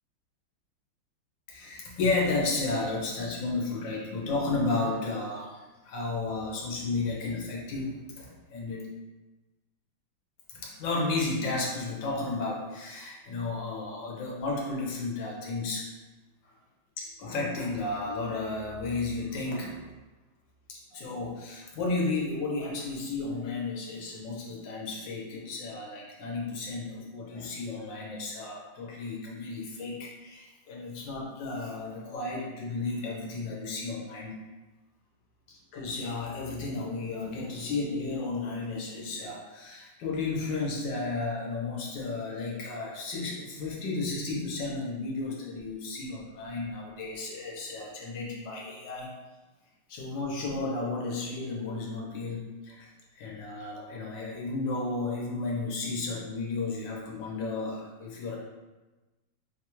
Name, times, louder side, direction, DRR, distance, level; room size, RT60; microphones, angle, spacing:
voice 1, 1.5-8.9 10.5-15.9 17.0-19.9 20.7-34.3 35.5-49.1 49.9-52.9 53.1-58.4, left 3 dB, 70° left, -2 dB, 1.4 m, -33 dB
4.9 x 2.3 x 3.0 m, 1.1 s
omnidirectional pair, 2.2 m